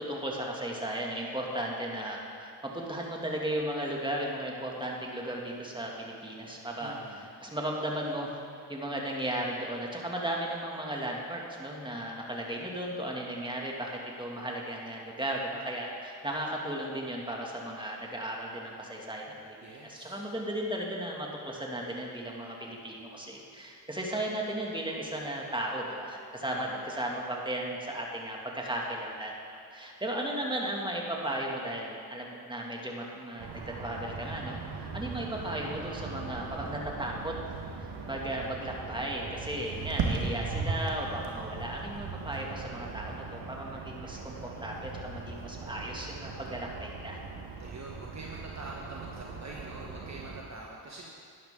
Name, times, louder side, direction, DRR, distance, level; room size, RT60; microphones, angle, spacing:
voice 1, 0.0-8.4 8.7-37.3 38.1-47.2, right 1 dB, 10° right, -2 dB, 2.3 m, -35 dB
voice 2, 6.8-7.3 19.6-20.2 26.4-26.8 47.6-51.1, right 2 dB, 40° right, -2 dB, 1.3 m, -45 dB
sound 1, 33.4-50.4, right 4 dB, 65° right, 1.5 m, -39 dB
11.5 x 10.5 x 3.8 m, 2.4 s
supercardioid pair, 50°, 44 cm